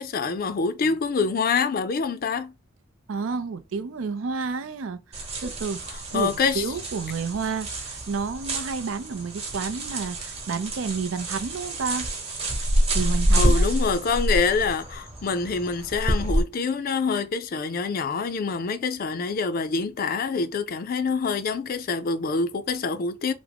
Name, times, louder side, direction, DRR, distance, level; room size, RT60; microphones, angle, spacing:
voice 1, 0.0-2.5 5.9-6.7 13.4-23.3, left 4 dB, 45° left, 0.4 m, -26 dB
voice 2, 3.1-5.8 6.1-12.1 12.9-13.7, right 5 dB, 85° right, 0.5 m, -30 dB
sound 1, 5.1-16.4, right 1 dB, 30° right, 1.0 m, -27 dB
3.4 x 2.0 x 3.3 m
head